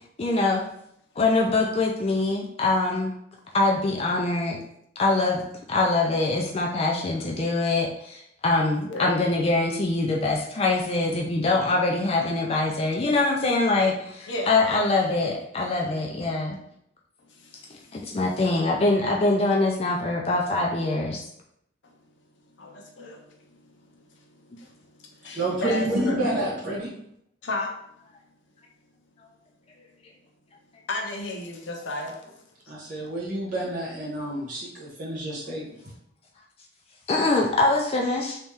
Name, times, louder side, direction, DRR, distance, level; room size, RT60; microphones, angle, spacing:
voice 1, 0.2-0.6 1.2-3.1 3.5-4.6 5.0-16.6 17.9-21.2 37.1-38.4, left 2 dB, 30° left, -1 dB, 0.4 m, -24 dB
voice 2, 14.3-14.6 17.3-18.2 22.6-23.6 24.1-26.2 27.4-27.8 30.9-32.3, left 2 dB, 70° left, 2 dB, 0.7 m, -34 dB
voice 3, 25.3-26.9 32.7-35.9, right 1 dB, 45° right, -6 dB, 1.4 m, -29 dB
3.1 x 2.8 x 3.6 m, 0.74 s
head